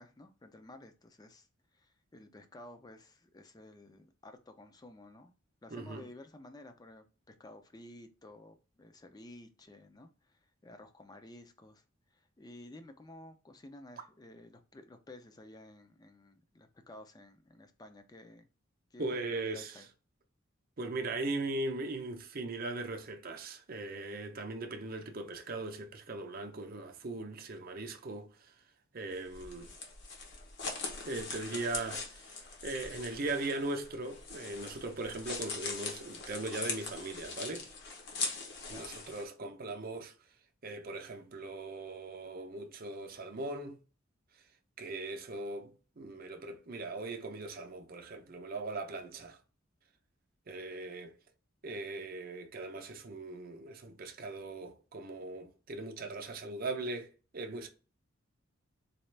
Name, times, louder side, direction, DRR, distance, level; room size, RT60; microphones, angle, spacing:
voice 1, 0.0-5.3 5.6-11.8 12.1-18.5 18.9-19.9 38.7-38.9, left 1 dB, 20° left, 0.4 m, -53 dB
voice 2, 5.7-6.0 19.0-19.8 20.8-28.5 28.9-29.8 30.9-32.4 32.6-37.7 38.7-40.1 40.6-43.8 44.8-49.4 50.5-51.2 51.6-57.7, right 2 dB, 45° right, 0.6 m, -39 dB
sound 1, 29.1-39.2, left 4 dB, 55° left, 0.9 m, -41 dB
4.1 x 2.4 x 3.2 m
head